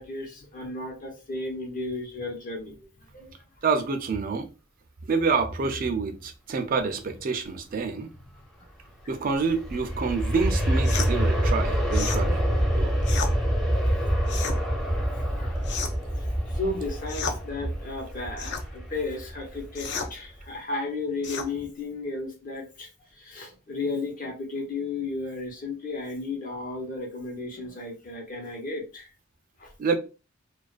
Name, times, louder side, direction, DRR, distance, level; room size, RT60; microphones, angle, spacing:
voice 1, 0.0-2.9 3.1-3.7 6.8-6.9 14.1-14.3 15.2-15.6 16.2-22.9 23.2-29.1 29.6-29.7, left 3 dB, 45° left, 0.8 m, -34 dB
voice 2, 3.6-4.5 5.1-8.1 9.1-12.4 12.8-12.9 29.8-30.0, right 4 dB, 45° right, 0.4 m, -27 dB
Aircraft, 9.1-20.0 20.4-20.5, equal, ahead, 0.6 m, -26 dB
sound 1, 10.8-11.1 11.9-12.2 13.0-13.3 14.2-14.6 15.6-16.1 17.1-17.4 18.4-18.7 19.8-20.1 21.2-21.5, left 5 dB, 60° left, 0.4 m, -32 dB
2.3 x 2.2 x 2.4 m
head